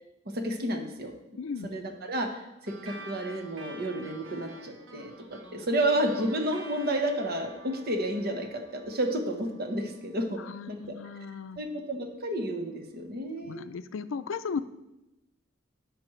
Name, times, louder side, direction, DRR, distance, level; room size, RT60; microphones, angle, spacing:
voice 1, 0.3-1.1 1.6-10.4 10.7-11.0 11.6-13.6, right 1 dB, 50° right, 4 dB, 1.1 m, -31 dB
voice 2, 1.4-1.7 10.4-11.6 13.4-14.6, left 5 dB, 75° left, 13 dB, 0.4 m, -36 dB
sound 1, 2.7-11.5, right 1 dB, 80° right, 1.3 m, -49 dB
13.5 x 5.1 x 3.2 m, 0.94 s
head